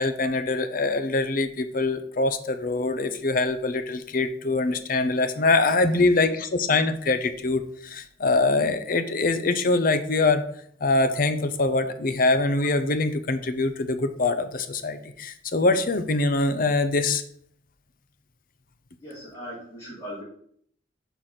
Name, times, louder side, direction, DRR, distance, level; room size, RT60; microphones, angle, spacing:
voice 1, 0.0-10.4 10.8-17.2, left 3 dB, 50° left, 9 dB, 0.7 m, -24 dB
voice 2, 19.0-20.2, equal, 15° left, -9 dB, 3.2 m, -39 dB
6.7 x 4.6 x 5.8 m, 0.65 s
head